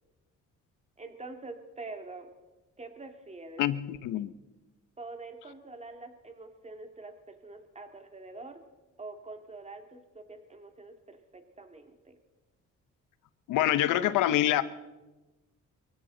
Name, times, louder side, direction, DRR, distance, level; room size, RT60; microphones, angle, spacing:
voice 1, 1.0-2.3 2.8-3.6 5.0-8.6 9.0-12.2, right 3 dB, 20° right, 5 dB, 2.1 m, -45 dB
voice 2, 3.6-4.3 13.5-14.6, left 13 dB, 90° left, 15 dB, 0.8 m, -26 dB
23.0 x 16.0 x 3.9 m, 1.1 s
cardioid pair, 90°, 30 cm